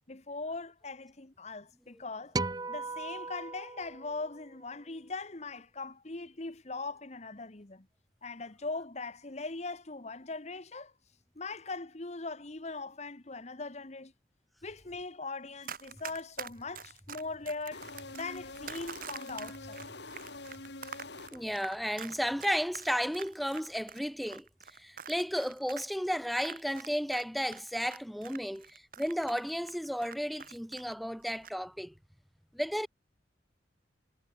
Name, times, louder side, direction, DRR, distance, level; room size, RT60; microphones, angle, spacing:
voice 1, 0.1-2.3 2.7-7.8 8.2-10.9 11.4-14.1 14.6-17.9 18.1-19.8, left 3 dB, 35° left, 1.2 m, -40 dB
sound 1, 2.3-4.8, right 3 dB, 20° right, 0.7 m, -38 dB
Run, 15.6-27.2 27.5-30.9 31.2-31.5, right 7 dB, 50° right, 4.7 m, -45 dB
sound 2, 17.7-21.8, left 2 dB, 70° left, 5.5 m, -46 dB
voice 2, 21.3-31.9 32.5-32.9, equal, ahead, 2.3 m, -33 dB
head